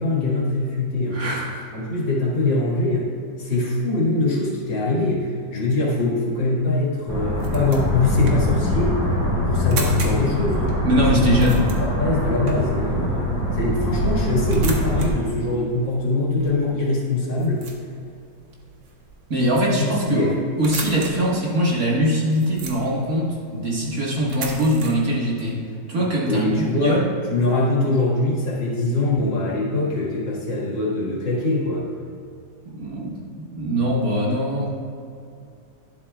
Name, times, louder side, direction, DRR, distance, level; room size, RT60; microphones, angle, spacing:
voice 1, 0.0-1.2 1.7-3.1 3.4-9.0 9.5-10.7 11.1-11.2 11.8-17.6 20.1-20.3 26.2-27.0 27.3-31.8, left 2 dB, 80° left, -4 dB, 2.6 m, -23 dB
voice 2, 1.1-1.7 10.8-11.7 19.3-20.3 20.6-25.6 25.9-26.5 26.7-27.1 32.7-34.7, equal, 50° right, -5 dB, 2.0 m, -22 dB
sound 1, 7.1-15.1, left 1 dB, 15° right, 2.5 m, -23 dB
sound 2, 7.1-24.9, right 4 dB, 85° right, 1.8 m, -39 dB
11.5 x 11.5 x 2.4 m, 2.5 s
omnidirectional pair, 1.9 m